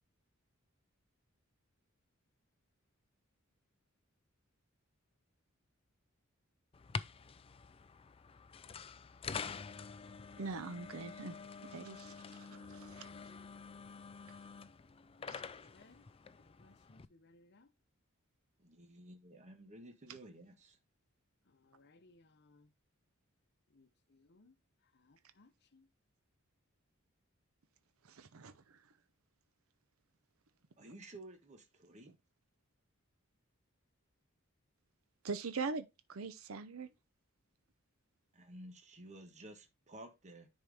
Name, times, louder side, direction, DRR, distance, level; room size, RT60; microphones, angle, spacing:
sound 1, 6.7-17.0, left 5 dB, 25° left, 0.4 m, -47 dB
voice 1, 10.4-13.1 15.3-15.4 28.0-28.8 35.2-36.9, right 4 dB, 80° right, 0.6 m, -43 dB
voice 2, 12.7-14.3 15.2-16.1 16.3-17.7 21.4-22.7 23.7-24.6 24.8-25.9, left 2 dB, 55° left, 0.9 m, -66 dB
voice 3, 18.6-20.8 30.8-32.1 38.3-40.5, right 1 dB, 35° right, 1.4 m, -53 dB
10.0 x 4.5 x 3.5 m
head